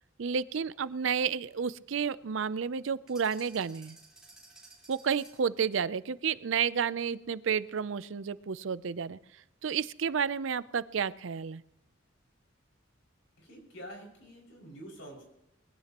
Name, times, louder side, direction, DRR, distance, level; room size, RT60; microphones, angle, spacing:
voice 1, 0.2-4.0 4.9-9.2 9.6-11.6, right 6 dB, 65° right, 17 dB, 0.5 m, -31 dB
sound 1, 3.1-5.6, right 2 dB, 5° right, 4.2 m, -55 dB
voice 2, 13.4-15.2, equal, 70° left, 0 dB, 5.9 m, -47 dB
21.5 x 16.0 x 3.0 m, 0.88 s
head